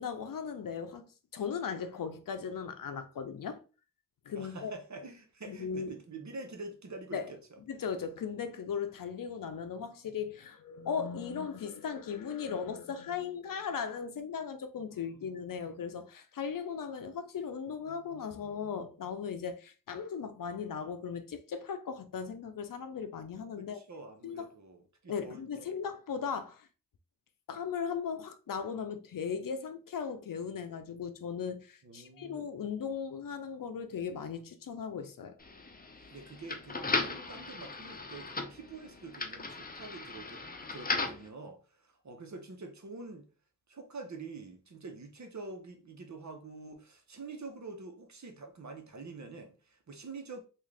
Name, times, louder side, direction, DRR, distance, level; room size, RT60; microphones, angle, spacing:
voice 1, 0.0-3.6 4.3-4.7 5.5-5.9 7.1-7.3 7.7-23.8 24.2-24.5 25.1-26.7 27.5-35.4, left 6 dB, 80° left, 0.6 m, -37 dB
voice 2, 4.3-7.4 14.9-15.5 23.6-25.7 31.8-32.5 36.1-40.4 40.7-43.3 43.7-50.4, right 3 dB, 60° right, 1.0 m, -46 dB
sound 1, 35.4-41.3, left 3 dB, 25° left, 0.7 m, -37 dB
3.6 x 2.5 x 3.3 m
cardioid pair, 50°, 33 cm